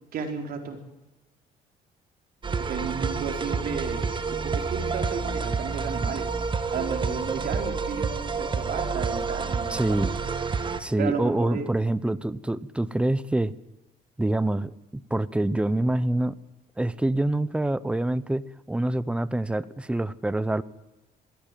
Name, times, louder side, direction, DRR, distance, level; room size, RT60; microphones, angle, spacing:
voice 1, 0.1-0.8 2.6-6.3 6.7-10.1 11.0-11.7, right 6 dB, 60° right, 4 dB, 4.2 m, -33 dB
sound 1, 2.4-10.8, right 5 dB, 30° right, 1.7 m, -29 dB
voice 2, 9.7-10.1 10.8-13.5 14.2-16.4 16.8-20.6, right 1 dB, 5° right, 17 dB, 0.9 m, -26 dB
21.5 x 15.0 x 9.2 m, 1.1 s
cardioid pair, 110°, 17 cm